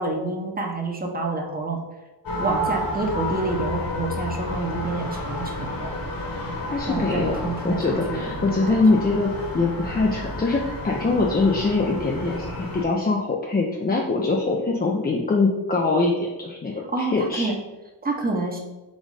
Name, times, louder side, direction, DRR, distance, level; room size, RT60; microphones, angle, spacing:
voice 1, 0.0-1.8 2.4-5.9 6.9-8.8 16.9-17.5 18.0-18.6, right 3 dB, 20° right, 1 dB, 0.9 m, -28 dB
sound 1, 2.2-12.8, left 1 dB, 45° left, 1.4 m, -31 dB
voice 2, 6.7-12.5 12.7-17.5, left 3 dB, 20° left, -1 dB, 0.5 m, -23 dB
4.1 x 2.6 x 4.7 m, 1.1 s
cardioid pair, 75°, 50 cm